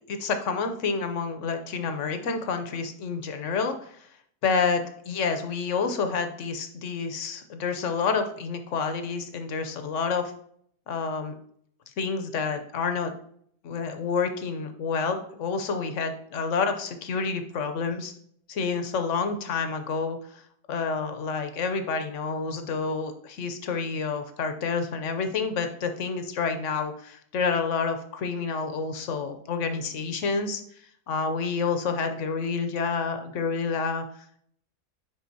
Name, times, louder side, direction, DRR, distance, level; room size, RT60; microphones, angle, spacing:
voice 1, 0.1-4.0 4.4-10.3 10.9-11.3 12.0-13.1 13.6-18.1 18.5-20.2 20.7-30.6 31.1-34.0, left 5 dB, 60° left, 7 dB, 0.9 m, -29 dB
9.6 x 3.7 x 2.7 m, 0.64 s
omnidirectional pair, 1.7 m